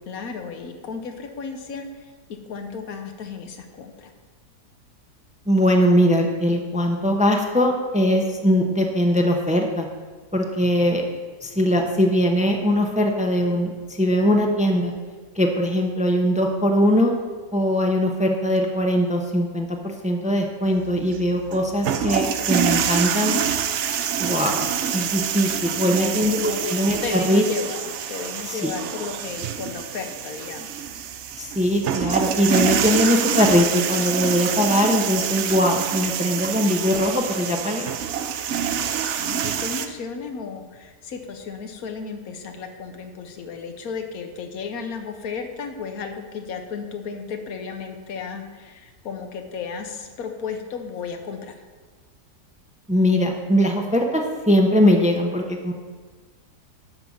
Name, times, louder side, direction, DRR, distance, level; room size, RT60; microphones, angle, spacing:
voice 1, 0.1-2.1 2.5-4.1 25.7-26.6 27.0-27.8 28.1-30.7 39.2-51.6, left 5 dB, 65° left, 5 dB, 1.4 m, -34 dB
voice 2, 5.5-9.9 10.3-11.1 11.4-13.7 14.0-14.9 15.4-17.1 17.5-23.3 24.2-24.7 24.9-27.4 28.5-28.7 31.4-37.9 52.9-55.7, equal, 10° right, 3 dB, 0.4 m, -21 dB
sound 1, 20.7-39.9, right 8 dB, 65° right, 0.7 m, -26 dB
11.5 x 3.9 x 7.1 m, 1.4 s
omnidirectional pair, 1.7 m